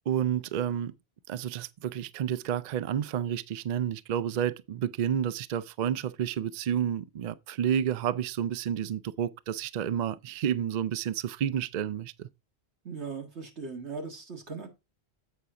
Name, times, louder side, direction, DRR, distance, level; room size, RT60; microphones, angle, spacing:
voice 1, 0.1-0.9 1.3-12.3, right 9 dB, 55° right, 0.5 m, -30 dB
voice 2, 12.8-14.7, right 4 dB, 90° right, 2.1 m, -38 dB
8.2 x 5.7 x 3.7 m
omnidirectional pair, 1.1 m